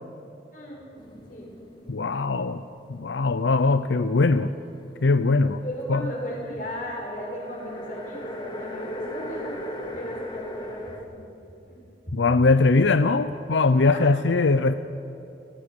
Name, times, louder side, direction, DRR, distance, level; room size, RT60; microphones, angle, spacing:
voice 1, 0.5-0.9 1.3-1.5 5.6-11.3 11.7-12.1 13.9-14.1, equal, 45° left, -1 dB, 6.0 m, -36 dB
sound 1, 1.0-2.8 3.0-6.2 6.9-11.0, equal, 25° left, 2.1 m, -39 dB
voice 2, 1.9-2.6 2.9-4.5 5.0-5.6 5.9-6.0 12.1-14.7, left 3 dB, 90° left, 11 dB, 0.6 m, -21 dB
30.0 x 15.5 x 7.0 m, 3.0 s
head